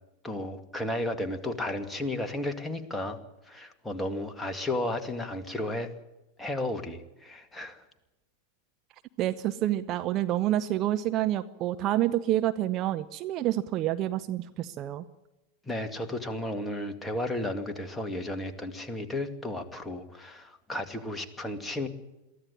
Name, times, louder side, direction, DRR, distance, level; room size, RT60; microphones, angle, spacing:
voice 1, 0.2-3.2 3.5-5.9 6.4-7.8 15.7-21.9, left 1 dB, 10° left, 6 dB, 2.2 m, -33 dB
voice 2, 9.2-15.0, right 13 dB, 35° right, 10 dB, 0.8 m, -28 dB
23.0 x 15.0 x 9.8 m, 1.0 s
figure-of-eight pair, 90°, 0 cm